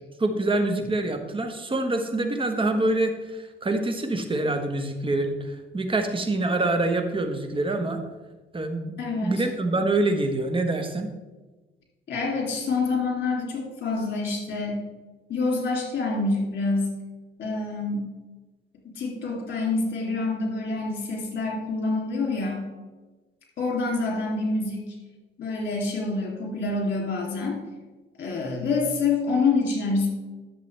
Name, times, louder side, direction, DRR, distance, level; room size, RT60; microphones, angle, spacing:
voice 1, 0.2-8.0 8.5-8.9 9.2-11.1, right 2 dB, 25° right, 6 dB, 1.2 m, -25 dB
voice 2, 9.0-9.4 12.1-14.8 15.3-16.9 17.4-18.1 18.9-22.7 23.6-24.9 25.4-27.6 28.2-30.1, left 3 dB, 60° left, 0 dB, 2.8 m, -26 dB
11.0 x 7.0 x 3.3 m, 1.2 s
cardioid pair, 90°, 20 cm